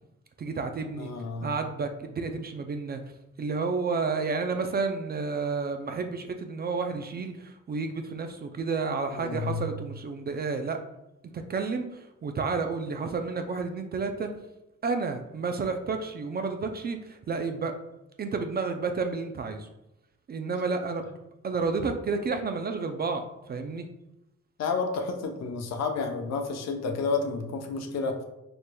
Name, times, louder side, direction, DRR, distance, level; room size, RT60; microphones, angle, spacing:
voice 1, 0.4-1.1 1.4-3.0 3.4-10.8 11.3-14.3 14.8-17.7 18.2-19.7 20.3-21.0 21.4-23.9, right 4 dB, 35° right, 6 dB, 0.4 m, -31 dB
voice 2, 1.0-1.5 9.1-9.7 24.6-28.2, left 4 dB, 60° left, 4 dB, 0.7 m, -30 dB
4.3 x 3.2 x 2.2 m, 0.90 s
cardioid pair, 90°, 30 cm